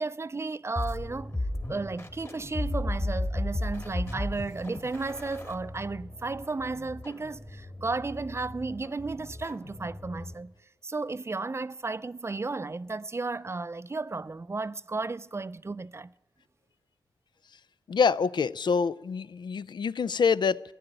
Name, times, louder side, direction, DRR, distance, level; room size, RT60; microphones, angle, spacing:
voice 1, 0.0-1.3 1.7-10.5 10.8-16.1, right 3 dB, 30° right, 0.4 m, -34 dB
sound 1, 0.8-10.5, left 1 dB, 35° left, 1.8 m, -35 dB
voice 2, 17.9-20.6, left 5 dB, 65° left, 0.4 m, -26 dB
14.5 x 10.0 x 8.9 m
cardioid pair, 45°, 8 cm